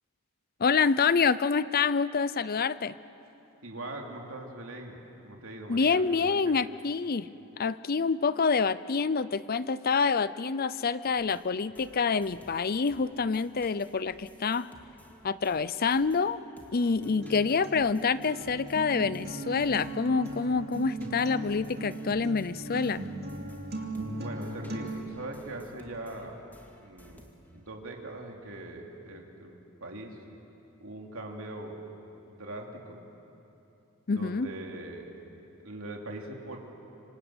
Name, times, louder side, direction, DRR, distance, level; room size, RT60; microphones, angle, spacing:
voice 1, 0.6-2.9 5.7-7.3 7.6-14.7 15.2-16.4 16.7-23.0 34.1-34.5, left 5 dB, 45° left, 16 dB, 0.5 m, -27 dB
voice 2, 3.6-6.6 24.2-26.4 26.8-30.2 30.8-31.8 32.3-33.0 34.1-35.3 35.6-36.6, right 2 dB, 65° right, 1 dB, 3.1 m, -42 dB
sound 1, 11.2-16.3 16.6-27.7, equal, 10° left, 2.2 m, -57 dB
Acoustic guitar, 17.0-25.0, right 1 dB, 50° right, 2.6 m, -38 dB
26.5 x 26.0 x 8.0 m, 2.9 s
head